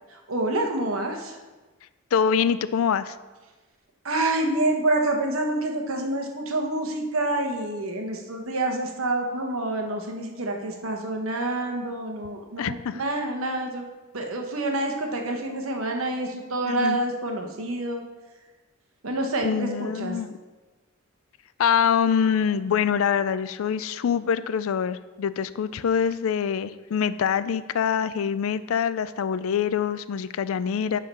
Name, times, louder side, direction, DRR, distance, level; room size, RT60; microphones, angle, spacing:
voice 1, 0.3-1.4 4.0-13.9 14.1-18.0 19.0-19.5 19.8-20.2, right 2 dB, 75° right, 2 dB, 1.1 m, -27 dB
voice 2, 2.1-3.2 12.6-13.0 16.7-17.0 19.4-20.4 21.6-31.0, left 7 dB, 75° left, 14 dB, 0.4 m, -25 dB
9.8 x 3.8 x 5.4 m, 1.2 s
head